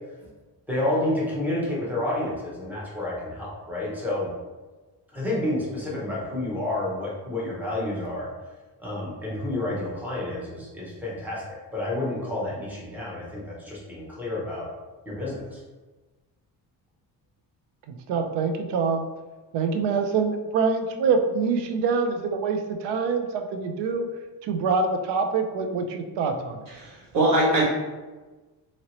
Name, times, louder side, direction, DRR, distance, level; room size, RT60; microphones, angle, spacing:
voice 1, 0.7-4.3 5.1-8.3 8.8-14.7 15.1-15.6, left 1 dB, 5° right, -5 dB, 0.7 m, -29 dB
voice 2, 17.9-19.1 19.5-24.1 24.4-26.6, right 5 dB, 85° right, 6 dB, 0.5 m, -25 dB
voice 3, 26.7-27.7, right 1 dB, 55° right, -4 dB, 1.0 m, -22 dB
2.9 x 2.8 x 2.9 m, 1.2 s
cardioid pair, 165°, 40 cm